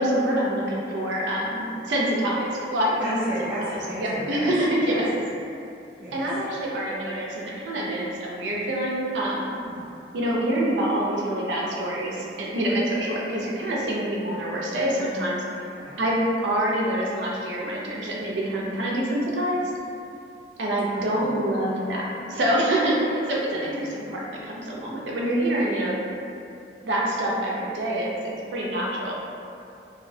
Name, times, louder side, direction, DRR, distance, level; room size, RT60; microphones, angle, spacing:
voice 1, 0.0-3.2 4.0-5.2 6.1-9.4 10.1-15.4 16.0-19.6 20.6-26.0 26.8-29.1, right 1 dB, 90° right, -4 dB, 0.4 m, -26 dB
voice 2, 3.0-4.5 4.8-5.0 6.0-6.2 9.6-9.9 15.7-16.0 20.9-21.4 23.5-24.0, equal, 10° right, -12 dB, 0.6 m, -35 dB
2.6 x 2.0 x 2.5 m, 2.6 s
head